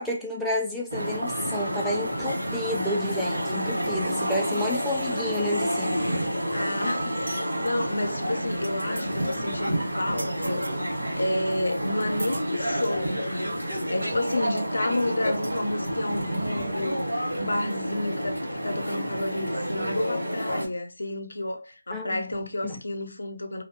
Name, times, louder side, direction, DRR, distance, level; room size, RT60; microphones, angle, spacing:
voice 1, 0.0-6.0 21.9-22.2 22.6-22.8, left 1 dB, ahead, 0.3 m, -30 dB
sound 1, 0.9-20.7, equal, 85° right, 1.2 m, -29 dB
voice 2, 6.5-10.7 11.2-23.6, left 1 dB, 75° left, 0.5 m, -31 dB
sound 2, 7.3-7.7 8.2-8.3 8.5-9.0 9.3-9.5 10.2-10.8 11.5-11.6 12.2-13.0 13.9-14.0 14.6-14.7 15.4-15.6, right 2 dB, 65° right, 0.4 m, -40 dB
2.5 x 2.1 x 2.8 m
figure-of-eight pair, 160°, 0 cm